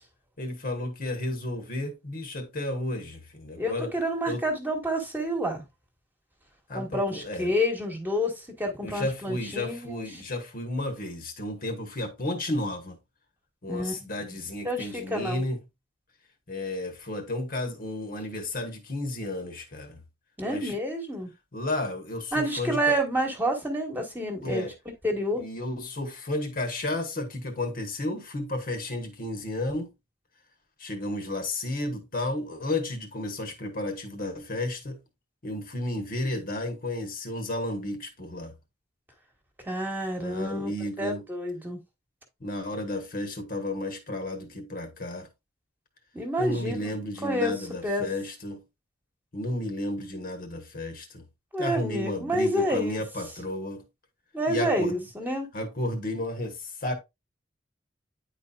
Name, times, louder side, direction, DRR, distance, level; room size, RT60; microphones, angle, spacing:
voice 1, 0.4-3.9 4.3-4.4 6.7-7.5 8.8-13.0 13.6-15.6 16.5-20.0 20.5-20.7 21.5-23.0 24.4-24.7 25.4-29.9 30.8-35.0 35.4-38.5 40.2-41.2 42.4-45.3 46.4-48.6 49.3-51.2 51.6-53.8 54.5-55.0 55.5-56.9, left 1 dB, 50° left, 1.2 m, -32 dB
voice 2, 3.6-5.6 6.7-10.0 13.7-13.9 14.3-15.4 20.4-21.3 22.3-24.6 25.0-25.4 39.7-40.7 41.0-41.8 46.1-46.9 47.2-48.1 51.5-53.0 54.3-55.5, equal, 10° right, 1.4 m, -29 dB
9.7 x 4.2 x 2.4 m
head